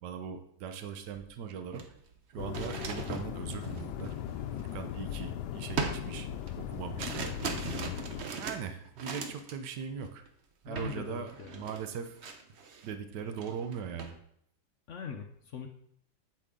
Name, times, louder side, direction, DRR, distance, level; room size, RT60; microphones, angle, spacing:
voice 1, 0.0-1.8 2.3-4.1 4.6-6.3 6.5-7.4 8.3-10.2 10.6-12.2 12.8-14.1, right 7 dB, 80° right, 8 dB, 1.4 m, -40 dB
sound 1, 1.1-1.2 1.6-5.2 5.8-9.7 10.0-10.3 10.8-11.0 11.3-12.9 13.3-14.2, right 4 dB, 50° right, 0.9 m, -40 dB
sound 2, 2.4-8.2, left 10 dB, 80° left, 1.2 m, -38 dB
voice 2, 10.7-11.7 14.9-15.7, left 6 dB, 60° left, 5 dB, 0.8 m, -41 dB
8.8 x 8.5 x 3.7 m, 0.70 s
omnidirectional pair, 1.8 m